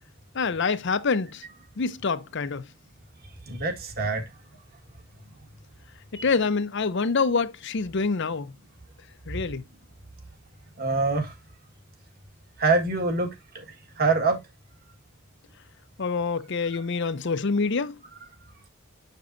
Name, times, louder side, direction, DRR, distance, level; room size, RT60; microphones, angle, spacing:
voice 1, 0.3-1.4 1.8-2.7 6.1-8.5 9.3-9.6 16.0-18.0, left 4 dB, 55° left, 0.6 m, -26 dB
voice 2, 3.5-4.3 6.2-6.3 10.8-11.3 12.6-13.6 14.0-14.4, right 3 dB, 45° right, 1.7 m, -25 dB
7.1 x 6.8 x 2.6 m
head